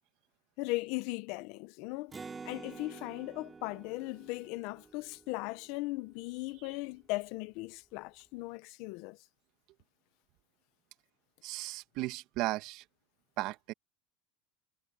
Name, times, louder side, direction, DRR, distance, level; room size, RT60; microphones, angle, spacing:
voice 1, 0.6-2.2 2.4-9.2, left 22 dB, 60° left, 1.2 m, -38 dB
Acoustic guitar, 2.1-5.8, right 4 dB, 20° right, 4.2 m, -49 dB
voice 2, 11.4-12.8 13.4-13.7, right 19 dB, 60° right, 1.7 m, -35 dB
supercardioid pair, 120°, 0 cm